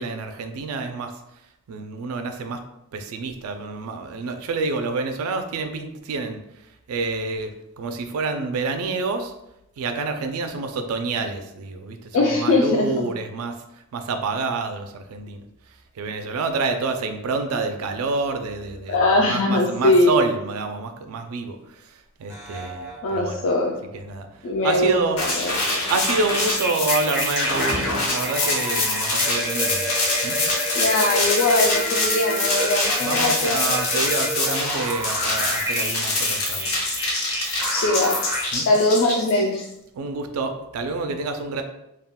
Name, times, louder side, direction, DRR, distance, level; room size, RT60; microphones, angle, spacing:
voice 1, 0.0-2.6 2.9-9.3 9.8-23.4 23.9-25.2 25.9-29.9 30.2-30.4 33.0-36.7 38.5-38.7 39.9-41.6, right 3 dB, 85° right, 6 dB, 0.3 m, -28 dB
voice 2, 12.1-12.9 18.9-20.1 23.0-23.8 24.4-25.0 25.4-25.8 30.8-33.6 34.0-34.1 37.7-38.2 38.7-39.6, left 2 dB, 60° left, -1 dB, 0.3 m, -21 dB
sound 1, 22.3-23.9 24.7-38.5, right 1 dB, 10° right, 0.4 m, -30 dB
sound 2, 25.2-39.6, left 2 dB, 85° left, 0.7 m, -25 dB
2.3 x 2.2 x 3.5 m, 0.86 s
head